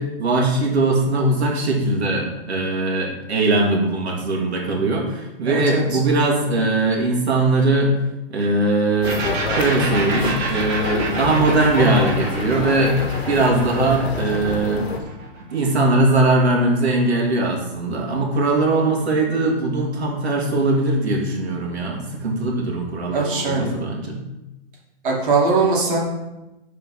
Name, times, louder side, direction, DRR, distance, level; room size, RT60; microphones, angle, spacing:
voice 1, 0.0-7.9 8.3-13.0 13.3-14.9 15.5-24.2, right 2 dB, 90° right, 0 dB, 2.6 m, -20 dB
voice 2, 5.4-6.0 23.1-23.7 25.0-26.0, right 3 dB, 55° right, -2 dB, 2.6 m, -20 dB
sound 1, 9.0-15.0, left 4 dB, 75° left, 1.3 m, -27 dB
sound 2, 9.0-16.6, right 3 dB, 20° right, 1.1 m, -30 dB
7.0 x 4.5 x 5.6 m, 0.99 s
hypercardioid pair, 165°, 32 cm